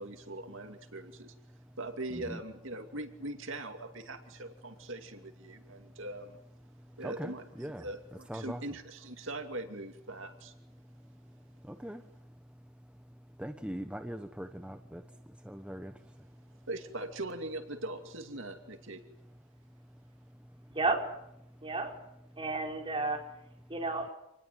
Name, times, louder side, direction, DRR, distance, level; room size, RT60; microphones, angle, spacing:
voice 1, 0.0-1.3 1.8-6.4 7.0-10.5 16.7-19.0, right 2 dB, 65° right, 6 dB, 2.6 m, -41 dB
voice 2, 7.0-7.3 7.6-7.8 8.3-8.6 11.6-12.0 13.4-15.0 15.4-16.3, equal, 5° right, 6 dB, 1.1 m, -41 dB
voice 3, 20.7-21.0 21.6-21.9 22.4-23.2 23.7-24.1, right 3 dB, 25° right, 1 dB, 5.0 m, -31 dB
27.5 x 20.0 x 9.4 m, 0.83 s
head